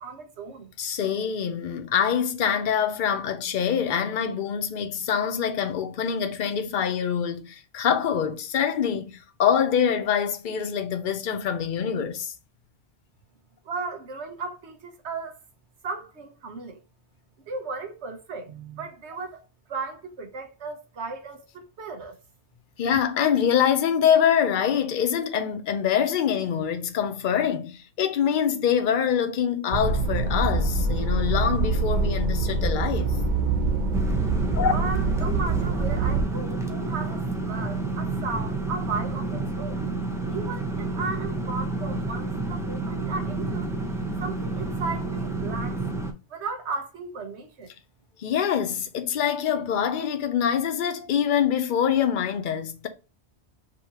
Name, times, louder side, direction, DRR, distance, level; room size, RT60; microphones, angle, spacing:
voice 1, 0.0-0.7 13.6-15.4 15.8-16.8 17.5-19.4 19.7-22.2 34.7-39.8 40.3-43.7 44.2-45.8 46.3-47.7, right 4 dB, 85° right, 1.2 m, -35 dB
voice 2, 0.8-12.3 22.8-33.2 34.6-34.7 48.2-52.9, left 8 dB, 55° left, 0.7 m, -25 dB
sound 1, 29.7-36.2, right 3 dB, 50° right, 0.7 m, -25 dB
sound 2, 33.9-46.1, right 3 dB, 5° right, 0.4 m, -30 dB
5.1 x 2.8 x 2.8 m
omnidirectional pair, 1.1 m